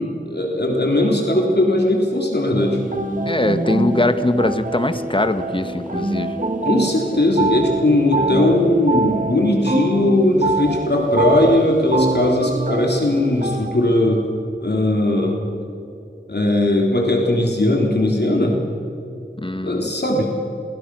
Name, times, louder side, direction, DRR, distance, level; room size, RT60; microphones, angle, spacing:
voice 1, 0.0-2.8 6.6-14.2 14.6-15.4 16.3-18.6 19.6-20.3, left 1 dB, 65° left, 0 dB, 3.7 m, -18 dB
sound 1, 2.6-13.7, right 3 dB, 45° right, 2.6 m, -25 dB
voice 2, 3.2-6.4 19.4-19.9, left 1 dB, 30° left, 10 dB, 1.6 m, -21 dB
30.0 x 22.0 x 6.3 m, 2.7 s
wide cardioid pair, 40°, 18 cm